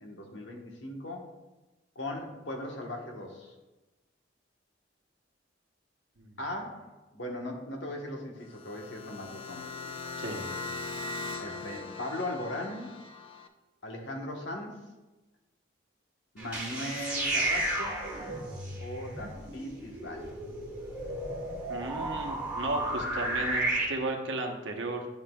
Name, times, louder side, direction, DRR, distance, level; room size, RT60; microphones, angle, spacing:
voice 1, 0.0-1.3 1.9-3.5 6.4-9.9 11.4-12.9 13.8-14.8 16.3-18.0 18.8-20.3, left 1 dB, 75° left, 1 dB, 1.2 m, -38 dB
sound 1, 8.4-13.5, left 3 dB, 30° left, 0.5 m, -40 dB
voice 2, 10.2-10.5 21.7-25.1, right 2 dB, 85° right, 2 dB, 1.0 m, -34 dB
sound 2, 16.4-23.8, right 1 dB, 10° right, 1.9 m, -33 dB
10.5 x 5.6 x 2.3 m, 1.1 s
head